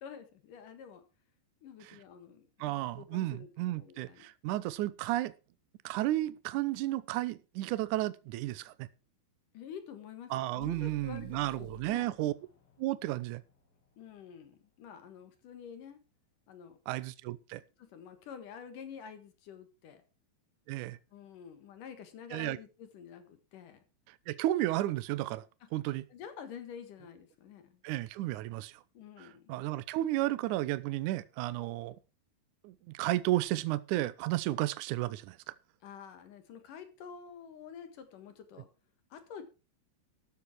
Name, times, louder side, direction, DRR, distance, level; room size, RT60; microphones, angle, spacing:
voice 1, 0.0-1.0 1.6-4.3 9.5-12.1 14.0-16.0 16.5-16.8 17.8-20.0 21.1-23.8 26.1-27.7 28.9-29.7 35.8-38.7 39.1-39.4, left 7 dB, 60° left, 2.9 m, -48 dB
voice 2, 2.6-5.3 5.8-8.9 10.3-12.3 12.8-13.4 16.9-17.6 20.7-21.0 22.3-22.6 24.3-25.4 25.7-26.1 27.8-28.7 29.2-32.0 32.6-35.4, right 16 dB, 85° right, 1.7 m, -33 dB
sound 1, 10.6-14.5, left 9 dB, 40° left, 2.5 m, -55 dB
13.5 x 8.6 x 4.6 m
omnidirectional pair, 4.6 m